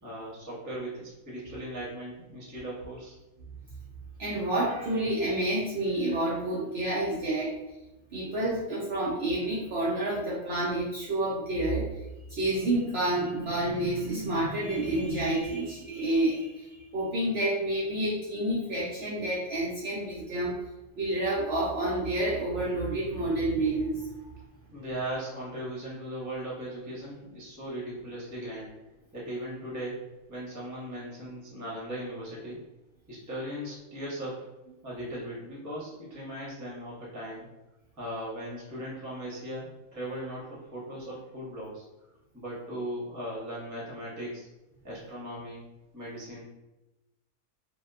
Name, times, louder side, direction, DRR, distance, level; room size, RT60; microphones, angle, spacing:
voice 1, 0.0-3.2 24.7-28.7 29.1-29.9 30.3-32.6 33.1-34.4 34.8-37.5 38.0-41.8 42.3-44.5 44.8-45.6 45.9-46.4, right 1 dB, 20° right, -6 dB, 0.4 m, -38 dB
voice 2, 4.2-7.5 8.1-12.0 12.3-20.6 21.0-24.3, right 1 dB, 80° right, -7 dB, 0.5 m, -29 dB
2.8 x 2.0 x 2.3 m, 1.0 s
omnidirectional pair, 1.7 m